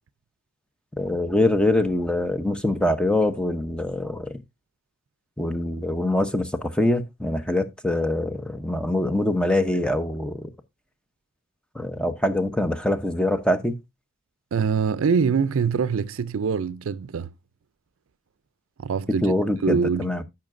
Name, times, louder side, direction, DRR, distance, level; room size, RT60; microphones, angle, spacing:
voice 1, 1.0-4.3 5.4-10.5 11.7-13.8 19.2-20.2, left 1 dB, 5° left, 0.8 m, -24 dB
voice 2, 14.5-17.3 18.8-19.3 19.6-20.2, right 5 dB, 75° right, 0.4 m, -24 dB
14.0 x 5.8 x 2.5 m
head